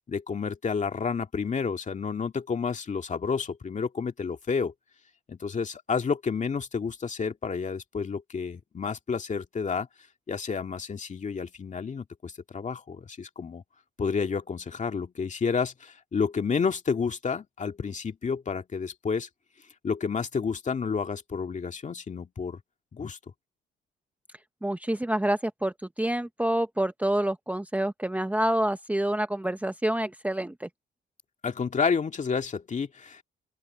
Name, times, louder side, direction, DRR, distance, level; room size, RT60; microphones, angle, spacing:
voice 1, 0.0-4.7 5.3-9.9 10.3-13.6 14.0-19.3 19.8-22.6 22.9-23.2 31.4-33.2, left 5 dB, 40° left, 2.2 m, -30 dB
voice 2, 24.6-30.7, right 1 dB, 5° right, 1.0 m, -27 dB
open air
cardioid pair, 90°, 20 cm